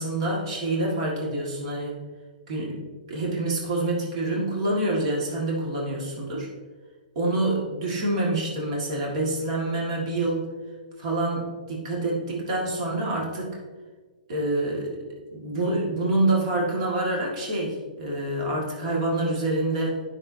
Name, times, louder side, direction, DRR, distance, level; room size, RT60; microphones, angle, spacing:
voice 1, 0.0-2.0 2.5-6.5 7.2-10.5 11.0-13.6 14.3-15.0 15.3-20.0, right 2 dB, 45° right, -3 dB, 1.9 m, -27 dB
11.0 x 5.9 x 2.7 m, 1.4 s
hypercardioid pair, 160°, 5 cm